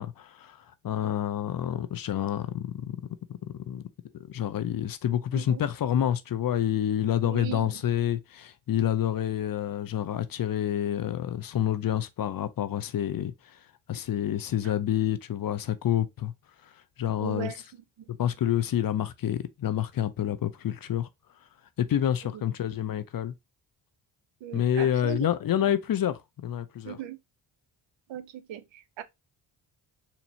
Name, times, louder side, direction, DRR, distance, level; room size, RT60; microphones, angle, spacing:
voice 1, 0.0-3.1 3.4-3.8 4.1-13.6 13.9-16.3 16.6-16.7 17.0-17.5 18.1-21.1 21.8-23.3 24.5-27.0, left 10 dB, 50° left, 0.6 m, -28 dB
voice 2, 5.3-5.7 7.2-7.8 17.2-17.6 18.0-18.1 22.3-22.4 24.4-25.3 25.6-25.7 26.8-27.2 28.1-29.0, right 10 dB, 70° right, 0.7 m, -38 dB
4.3 x 2.7 x 2.8 m
cardioid pair, 65°, 47 cm